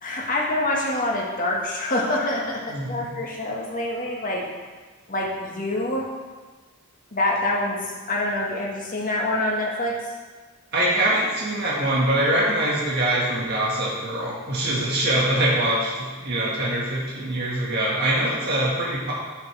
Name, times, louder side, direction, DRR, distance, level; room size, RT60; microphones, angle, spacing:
voice 1, 0.0-4.4 5.1-6.1 7.1-7.8 8.1-9.9, left 1 dB, 40° left, -2 dB, 1.7 m, -26 dB
voice 2, 2.7-3.1 10.7-19.1, right 1 dB, 50° right, -5 dB, 1.8 m, -23 dB
11.0 x 9.8 x 3.4 m, 1.3 s
head